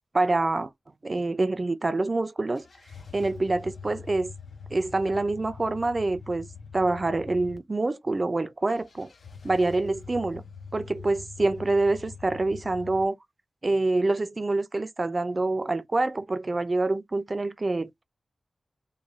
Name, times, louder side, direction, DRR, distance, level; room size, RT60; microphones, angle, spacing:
voice 1, 0.1-0.7 1.0-2.7 3.1-4.3 4.7-6.5 6.7-9.1 9.4-10.4 10.7-13.2 13.6-18.0, right 2 dB, 35° right, 0.5 m, -26 dB
sound 1, 2.5-7.6 8.7-13.0, left 5 dB, 70° left, 0.6 m, -44 dB
3.2 x 2.2 x 3.5 m
wide cardioid pair, 75°, 0 cm